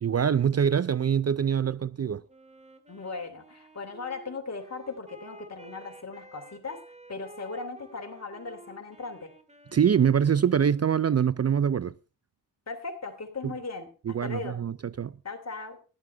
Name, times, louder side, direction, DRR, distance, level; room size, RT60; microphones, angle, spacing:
voice 1, 0.0-2.2 9.7-11.9 13.4-13.5 14.1-15.1, right 8 dB, 40° right, 0.5 m, -24 dB
Wind instrument woodwind instrument, 2.3-11.1, right 1 dB, 20° right, 2.0 m, -52 dB
voice 2, 2.9-6.8 7.1-9.3 12.7-14.6 15.2-15.8, left 4 dB, 45° left, 3.1 m, -38 dB
16.0 x 11.5 x 3.4 m
cardioid pair, 80°, 38 cm